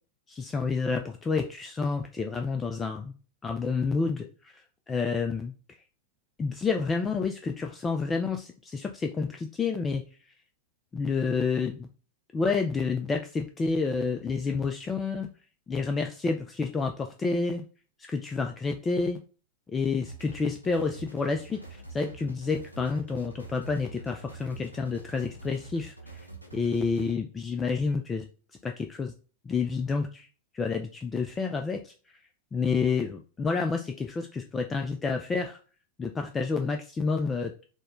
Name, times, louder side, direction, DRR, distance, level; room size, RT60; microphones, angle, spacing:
voice 1, 0.3-3.1 3.4-4.5 4.9-5.5 6.4-10.0 10.9-11.9 12.3-15.3 15.7-17.6 18.1-19.2 19.7-21.6 21.9-25.9 26.5-28.3 28.6-29.1 29.5-30.3 30.5-31.9 32.5-35.6 36.0-37.5, left 4 dB, 15° left, 4 dB, 0.3 m, -29 dB
sound 1, 20.1-27.1, right 3 dB, 90° left, 0.6 m, -46 dB
4.1 x 2.1 x 3.0 m, 0.38 s
figure-of-eight pair, 90°, 0 cm